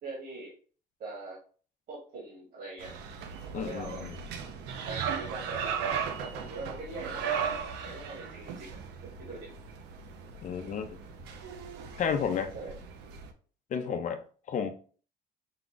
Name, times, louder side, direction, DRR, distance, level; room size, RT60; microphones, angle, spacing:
voice 1, 0.0-0.5 1.0-1.4 1.9-2.9 3.5-4.0 4.9-9.5 10.6-10.9 12.5-12.8 13.8-14.0, right 2 dB, 65° right, -5 dB, 1.8 m, -42 dB
sound 1, 2.8-13.3, right 7 dB, 85° right, 0.7 m, -37 dB
voice 2, 3.5-4.1 10.4-11.0 12.0-12.5 13.7-14.2 14.5-14.7, left 7 dB, 50° left, 8 dB, 0.7 m, -31 dB
5.3 x 2.4 x 3.9 m, 0.42 s
cardioid pair, 110°, 17 cm